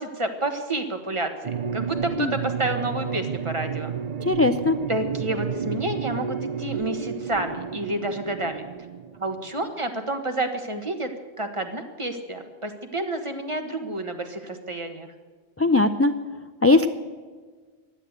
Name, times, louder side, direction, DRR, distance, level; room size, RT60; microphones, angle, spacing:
voice 1, 0.0-3.9 4.9-8.6 9.2-11.1 11.4-15.1, right 2 dB, 30° right, 6 dB, 1.4 m, -29 dB
sound 1, 1.4-9.6, right 7 dB, 45° right, 0.6 m, -31 dB
voice 2, 4.2-4.7 15.6-16.1 16.6-16.9, left 2 dB, 20° left, 9 dB, 0.3 m, -19 dB
16.0 x 11.0 x 8.1 m, 1.5 s
omnidirectional pair, 1.1 m